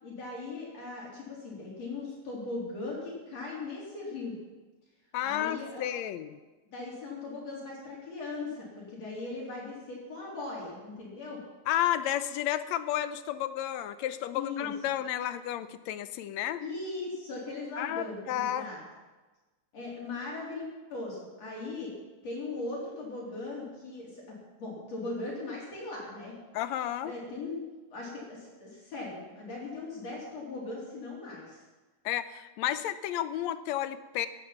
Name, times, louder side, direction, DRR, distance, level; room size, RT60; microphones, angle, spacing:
voice 1, 0.0-4.3 5.2-5.9 6.7-11.4 14.3-14.7 16.6-18.8 19.7-21.9 22.2-26.3 27.0-27.6 27.9-31.6, left 3 dB, 55° left, -4 dB, 4.6 m, -39 dB
voice 2, 5.1-6.4 11.7-16.6 17.8-18.7 26.5-27.1 32.1-34.3, left 12 dB, 80° left, 12 dB, 1.8 m, -32 dB
17.0 x 12.0 x 5.8 m, 1.2 s
omnidirectional pair, 3.5 m